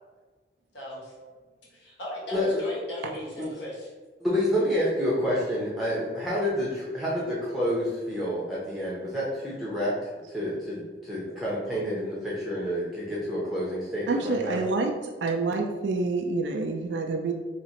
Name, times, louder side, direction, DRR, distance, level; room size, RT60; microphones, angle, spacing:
voice 1, 0.7-1.1 1.7-3.9, left 1 dB, 75° left, -5 dB, 1.3 m, -38 dB
voice 2, 4.2-9.9 10.3-14.6, equal, ahead, -7 dB, 0.7 m, -28 dB
voice 3, 14.1-17.3, right 3 dB, 80° right, 3 dB, 0.4 m, -28 dB
2.9 x 2.9 x 4.2 m, 1.4 s
head